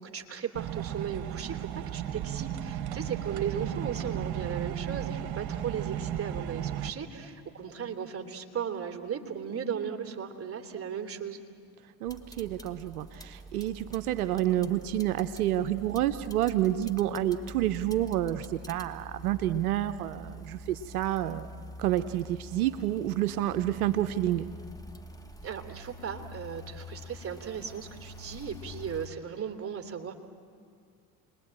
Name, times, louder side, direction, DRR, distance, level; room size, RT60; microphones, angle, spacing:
voice 1, 0.0-11.4 25.4-30.1, right 7 dB, 30° right, 5 dB, 2.9 m, -36 dB
sound 1, 0.5-6.9, right 11 dB, 60° right, 1.6 m, -34 dB
voice 2, 12.0-21.5 21.8-24.5, right 13 dB, 90° right, 11 dB, 0.7 m, -29 dB
sound 2, 12.1-29.1, equal, 10° left, 1.9 m, -46 dB
29.5 x 21.5 x 8.8 m, 2.2 s
hypercardioid pair, 70°, 43 cm